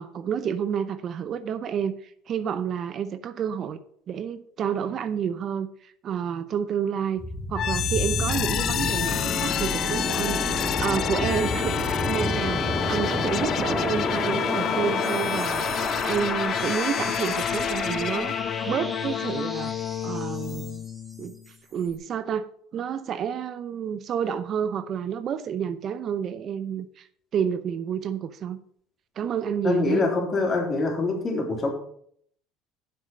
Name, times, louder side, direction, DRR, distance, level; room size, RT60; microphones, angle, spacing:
voice 1, 0.0-3.8 4.1-7.2 7.5-18.3 18.6-19.7 20.0-20.8 21.2-22.5 22.7-27.1 27.3-28.6 29.2-30.0, right 8 dB, 50° right, 0.7 m, -29 dB
sound 1, 7.2-21.0, equal, ahead, 2.5 m, -31 dB
sound 2, 7.6-21.4, left 10 dB, 50° left, 0.5 m, -29 dB
voice 2, 29.6-31.7, left 3 dB, 35° left, 3.4 m, -24 dB
7.6 x 6.4 x 6.6 m
supercardioid pair, 85°, 0 cm